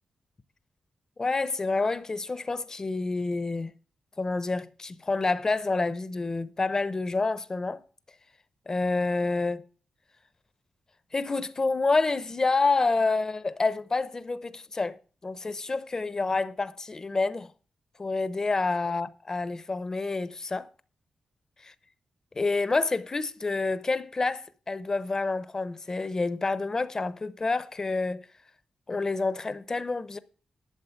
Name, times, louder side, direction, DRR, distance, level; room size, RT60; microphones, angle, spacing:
voice 1, 1.2-3.7 4.2-7.8 8.7-9.6 11.1-17.5 18.0-20.7 22.3-28.3 28.9-30.2, left 3 dB, 30° left, 0.8 m, -28 dB
12.0 x 7.4 x 5.8 m
wide cardioid pair, 125°, 2 cm